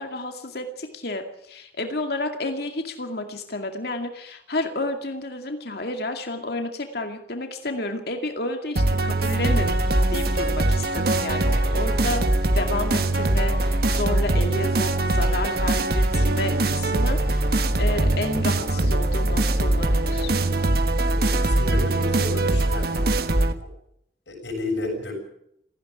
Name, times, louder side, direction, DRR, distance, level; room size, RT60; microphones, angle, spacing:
voice 1, 0.0-12.2 12.5-20.3, left 2 dB, 60° left, 5 dB, 2.3 m, -31 dB
sound 1, 8.8-23.5, right 2 dB, 55° right, 1.5 m, -22 dB
voice 2, 21.1-23.0 24.3-25.1, left 2 dB, 75° left, 2 dB, 7.3 m, -31 dB
17.5 x 15.0 x 9.8 m, 0.74 s
head